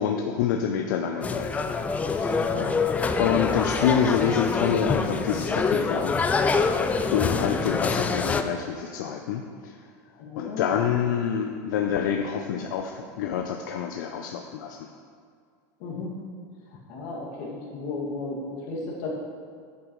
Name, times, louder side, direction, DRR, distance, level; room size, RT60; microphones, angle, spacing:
voice 1, 0.0-1.5 2.1-2.5 3.2-6.2 7.1-9.8 10.4-14.9, left 8 dB, 85° left, 4 dB, 0.5 m, -27 dB
sound 1, 1.2-8.4, left 4 dB, 15° left, 0.4 m, -25 dB
voice 2, 2.3-2.7 10.2-11.0 15.8-16.1 16.7-19.1, left 3 dB, 60° left, -3 dB, 2.2 m, -34 dB
9.6 x 8.4 x 3.1 m, 2.1 s
supercardioid pair, 140°, 10 cm